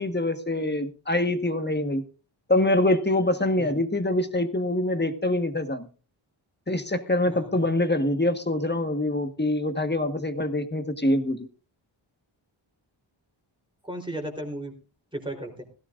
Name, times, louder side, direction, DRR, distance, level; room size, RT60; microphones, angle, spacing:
voice 1, 0.0-2.0 2.5-5.9 6.7-11.5, left 1 dB, 20° left, 8 dB, 1.5 m, -25 dB
voice 2, 7.2-7.7 13.8-14.7 15.1-15.6, right 1 dB, 10° right, 2 dB, 3.9 m, -35 dB
17.5 x 15.5 x 2.6 m, 0.35 s
wide cardioid pair, 95°, 49 cm